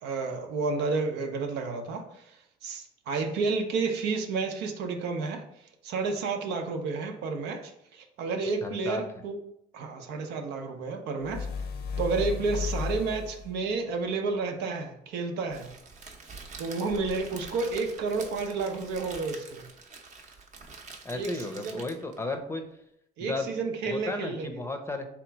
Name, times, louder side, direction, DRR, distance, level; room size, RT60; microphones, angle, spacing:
voice 1, 0.0-5.4 5.8-9.4 9.7-11.5 12.0-15.7 16.6-19.7 21.1-21.8 23.2-24.6, right 4 dB, 85° right, 4 dB, 0.7 m, -31 dB
voice 2, 8.6-9.0 21.0-22.6 23.2-23.5 23.8-25.1, left 2 dB, 15° left, 6 dB, 0.6 m, -34 dB
sound 1, 11.2-13.6, left 5 dB, 70° left, 0.6 m, -34 dB
Crackle, 15.5-22.2, right 4 dB, 45° right, 0.8 m, -46 dB
3.6 x 3.0 x 4.5 m, 0.77 s
cardioid pair, 110°, 17 cm